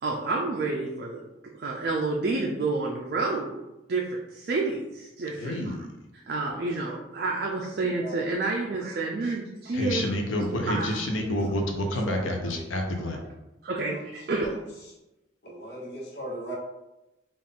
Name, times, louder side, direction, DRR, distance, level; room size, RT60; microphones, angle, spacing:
voice 1, 0.0-1.2 1.6-3.6 3.9-5.8 6.3-10.1 10.7-10.9 13.6-14.5, right 3 dB, 50° right, -1 dB, 0.4 m, -29 dB
voice 2, 5.4-5.9 9.7-13.2, left 1 dB, 90° left, 2 dB, 0.6 m, -29 dB
voice 3, 7.7-8.2 11.1-11.3 12.0-12.3 12.5-13.2 13.8-14.0 14.3-14.5 15.4-16.5, right 1 dB, 55° left, -4 dB, 1.1 m, -40 dB
3.7 x 2.5 x 3.6 m, 0.97 s
head